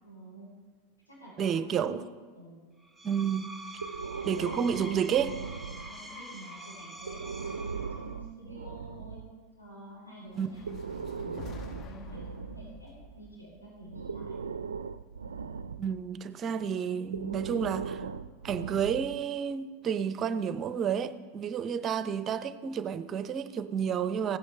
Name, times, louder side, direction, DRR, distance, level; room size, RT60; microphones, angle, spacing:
voice 1, 0.0-0.5 1.1-2.6 4.3-4.7 5.7-9.2 9.6-14.4, right 1 dB, 85° left, 3.7 m, -49 dB
voice 2, 1.4-2.0 3.0-3.5 4.2-5.4 10.3-10.5 15.8-18.1 18.4-24.4, right 7 dB, 30° right, 0.6 m, -30 dB
Screech, 2.8-8.3, right 1 dB, 5° left, 0.9 m, -45 dB
Breathing, 3.8-6.2 7.0-9.3 10.4-13.3 13.9-16.1 17.0-19.3, right 5 dB, 80° right, 0.3 m, -39 dB
sound 1, 10.3-14.5, left 5 dB, 35° left, 0.6 m, -48 dB
16.0 x 9.5 x 3.3 m
figure-of-eight pair, 90°, 0 cm